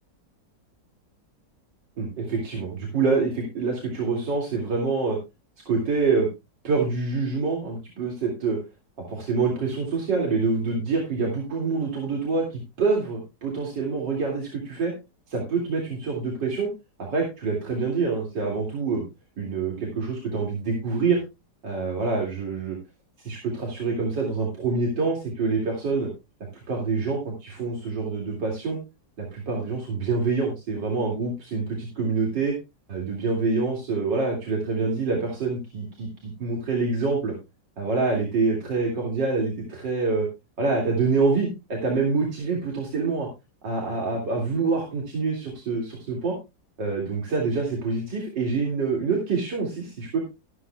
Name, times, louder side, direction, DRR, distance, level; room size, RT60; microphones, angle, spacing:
voice 1, 2.0-5.2 5.6-6.3 6.6-8.6 9.1-14.9 15.3-16.7 17.0-19.0 19.4-21.2 21.6-22.8 23.2-26.1 26.7-28.8 29.2-32.5 32.9-37.3 37.8-40.3 40.6-43.3 43.6-46.3 46.8-50.2, right 4 dB, 90° right, -1 dB, 3.3 m, -26 dB
13.0 x 13.0 x 2.3 m, 0.25 s
omnidirectional pair, 1.9 m